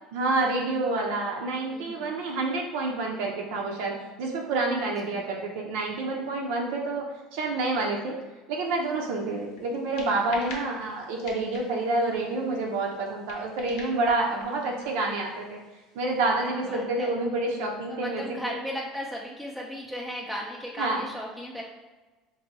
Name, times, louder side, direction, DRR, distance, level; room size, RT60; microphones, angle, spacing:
voice 1, 0.1-7.0 7.3-8.2 8.5-15.6 15.9-18.6 20.8-21.0, right 2 dB, 80° right, 0 dB, 0.6 m, -28 dB
voice 2, 1.7-2.1 5.1-5.2 16.4-17.1 17.9-21.6, equal, 5° left, -4 dB, 0.4 m, -36 dB
sound 1, 8.6-16.2, left 3 dB, 75° left, 0.8 m, -47 dB
2.7 x 2.6 x 4.0 m, 1.2 s
cardioid pair, 145°, 0 cm